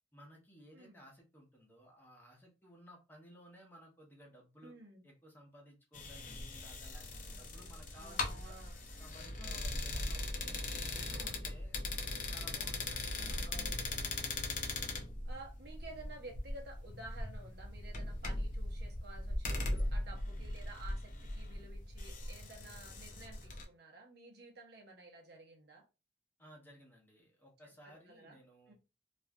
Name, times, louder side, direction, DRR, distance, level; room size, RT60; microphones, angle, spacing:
voice 1, 0.1-4.7 5.0-8.6 9.0-10.6 10.9-11.8 12.3-13.9 26.4-28.7, equal, 10° left, -1 dB, 0.8 m, -58 dB
voice 2, 4.6-5.0 7.9-8.8 9.4-9.6 11.1-11.4 13.4-14.2 15.2-25.8 27.8-28.4 28.7-28.8, right 2 dB, 60° right, 2 dB, 0.9 m, -53 dB
sound 1, 5.9-23.7, left 2 dB, 45° left, 0.5 m, -39 dB
3.1 x 2.5 x 2.2 m, 0.29 s
head